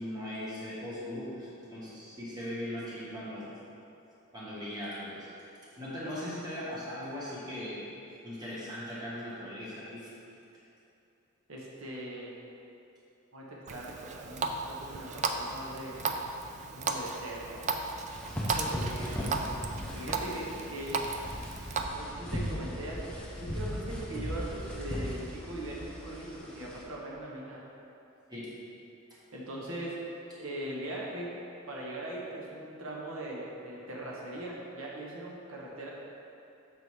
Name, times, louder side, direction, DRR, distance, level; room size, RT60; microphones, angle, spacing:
voice 1, 0.0-3.5 4.3-5.5 5.8-7.8 8.2-10.1 18.7-19.5 19.9-20.0 28.3-28.5, left 1 dB, 20° right, -8 dB, 1.5 m, -39 dB
voice 2, 11.5-12.3 13.3-16.0 16.7-17.8 18.5-19.1 19.9-21.0 21.9-27.6 29.3-30.0 30.4-31.3 31.7-35.9, right 1 dB, 80° right, -4 dB, 1.0 m, -40 dB
Water tap faucet, 13.7-21.8, right 4 dB, 35° right, 0.3 m, -35 dB
sound 1, 18.1-26.8, equal, 5° left, 0.9 m, -38 dB
6.8 x 4.1 x 4.7 m, 2.8 s
head